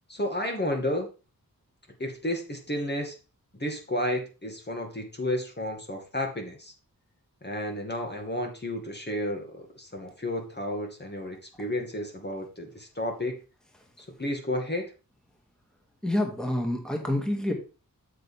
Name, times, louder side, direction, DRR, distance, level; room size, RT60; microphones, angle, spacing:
voice 1, 0.1-1.1 2.0-3.2 3.5-6.7 7.4-13.4 14.0-14.9, left 1 dB, 30° left, 2 dB, 2.3 m, -32 dB
voice 2, 16.0-17.5, left 1 dB, ahead, 1 dB, 2.2 m, -27 dB
7.6 x 7.5 x 3.6 m, 0.32 s
wide cardioid pair, 65°, 35 cm